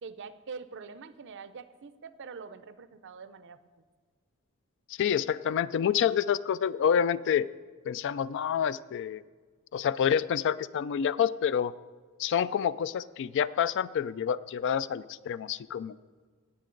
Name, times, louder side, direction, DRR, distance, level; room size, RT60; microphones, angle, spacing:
voice 1, 0.0-3.6, right 5 dB, 55° right, 14 dB, 0.5 m, -44 dB
voice 2, 5.0-7.5 7.9-9.2 9.7-11.7 12.2-16.0, left 8 dB, 55° left, 17 dB, 0.3 m, -28 dB
19.0 x 7.4 x 3.8 m, 1.5 s
head